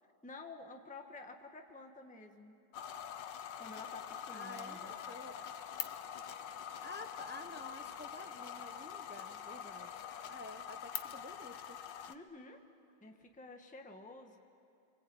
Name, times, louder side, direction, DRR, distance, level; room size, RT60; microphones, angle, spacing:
voice 1, 0.2-2.5 3.6-4.9 12.1-12.6 13.0-14.4, left 3 dB, 5° left, 3 dB, 1.3 m, -51 dB
sound 1, 2.7-12.1, left 8 dB, 85° left, 1.6 m, -45 dB
voice 2, 4.3-5.6 6.8-11.8, left 2 dB, 10° right, 6 dB, 0.6 m, -50 dB
26.5 x 24.5 x 8.8 m, 2.6 s
omnidirectional pair, 1.9 m